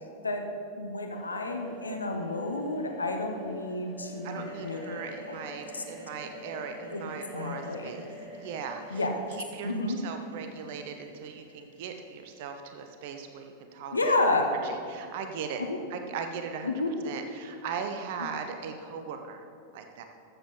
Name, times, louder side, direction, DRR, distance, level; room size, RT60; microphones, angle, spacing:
voice 1, 0.7-5.0 5.3-5.4 5.7-5.8 6.9-7.0 7.3-7.9 8.9-9.2 9.6-10.0 13.9-14.5 15.6-15.8 16.6-16.9, left 2 dB, 80° left, 4 dB, 0.8 m, -30 dB
sound 1, 1.1-8.7, left 1 dB, 5° right, 2.3 m, -47 dB
voice 2, 4.2-8.1 8.4-9.0 9.3-9.7 10.0-14.1 14.5-15.6 15.9-16.7 17.0-19.4 19.7-20.0, right 6 dB, 50° right, 6 dB, 0.7 m, -39 dB
sound 2, 4.2-14.4, right 1 dB, 75° right, 2.0 m, -48 dB
13.5 x 7.3 x 3.8 m, 2.5 s
figure-of-eight pair, 90°, 0 cm